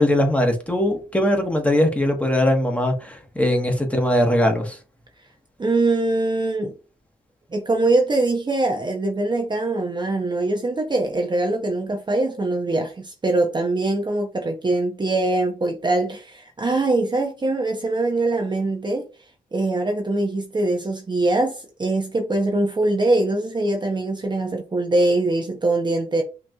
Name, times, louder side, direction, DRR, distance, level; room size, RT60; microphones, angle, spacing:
voice 1, 0.0-4.8, left 1 dB, 10° left, 1.2 m, -20 dB
voice 2, 5.6-6.7 7.5-19.1 19.5-26.2, right 2 dB, 30° right, 0.7 m, -22 dB
5.6 x 2.9 x 2.3 m
cardioid pair, 80°, 16 cm